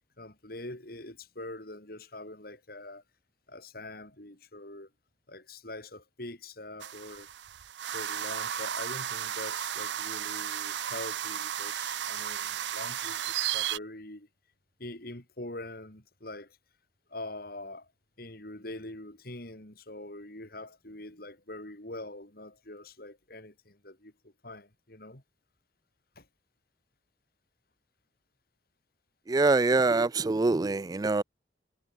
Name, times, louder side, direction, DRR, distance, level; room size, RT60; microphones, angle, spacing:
voice 1, 0.2-3.0 3.5-4.9 5.3-7.3 7.9-14.3 14.8-16.6 17.1-17.9 18.2-25.2 26.2-26.3, left 2 dB, 55° left, 4.7 m, -44 dB
sound 1, 6.8-13.8, right 10 dB, 75° right, 0.7 m, -34 dB
voice 2, 29.3-31.2, right 3 dB, 20° right, 0.3 m, -24 dB
head